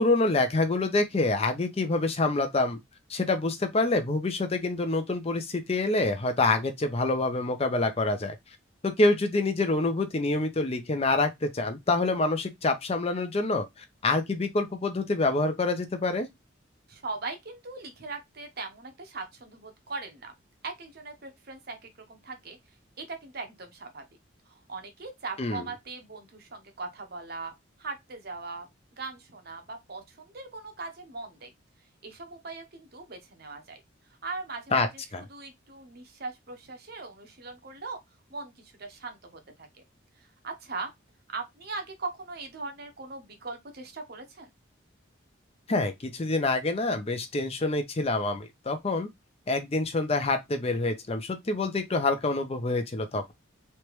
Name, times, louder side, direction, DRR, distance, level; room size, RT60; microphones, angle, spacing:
voice 1, 0.0-2.8 3.1-8.4 8.8-16.3 25.4-25.6 34.7-34.9 35.1-35.2 45.7-49.1 49.5-53.3, left 2 dB, 30° left, 0.5 m, -26 dB
voice 2, 16.9-20.3 20.6-22.6 23.0-24.0 24.5-27.5 27.8-28.7 29.0-31.5 32.0-33.8 34.2-35.0 35.3-38.0 38.3-39.8 40.2-40.9 41.3-44.5, right 3 dB, 50° right, 0.9 m, -40 dB
3.3 x 2.9 x 3.0 m
head